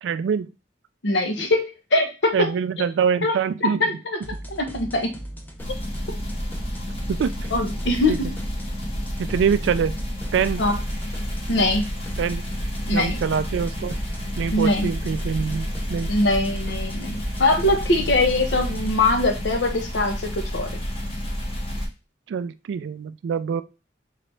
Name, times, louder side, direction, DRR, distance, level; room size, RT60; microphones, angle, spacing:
voice 1, 0.0-0.5 2.3-3.8 7.1-7.5 8.1-8.2 9.2-10.0 10.3-10.6 12.2-12.4 12.9-13.9 14.4-16.1 22.3-23.6, right 7 dB, 85° right, 13 dB, 0.3 m, -24 dB
voice 2, 1.0-2.5 2.8-2.9 3.2-3.4 3.6-4.2 4.5-5.2 6.1-6.2 7.5-8.3 10.6-10.8 11.5-11.9 12.9-13.2 14.5-14.9 16.1-20.8, left 2 dB, 75° left, 4 dB, 0.8 m, -22 dB
sound 1, 4.2-19.0, equal, 10° left, 0.6 m, -39 dB
sound 2, 5.6-21.9, equal, 35° left, 1.2 m, -30 dB
3.8 x 3.1 x 3.2 m, 0.29 s
head